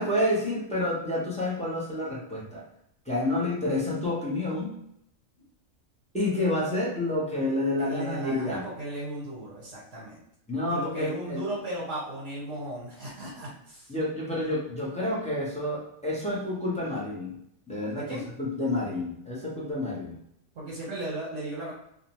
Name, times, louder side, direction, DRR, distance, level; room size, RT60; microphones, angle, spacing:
voice 1, 0.0-2.6 3.1-4.8 6.1-8.6 10.5-11.5 13.9-17.4 17.7-20.1, left 1 dB, 10° left, -7 dB, 0.5 m, -29 dB
voice 2, 7.8-10.2 10.7-13.9 17.9-18.2 20.5-21.7, right 1 dB, 70° right, -5 dB, 1.1 m, -36 dB
2.6 x 2.1 x 2.8 m, 0.75 s
omnidirectional pair, 1.3 m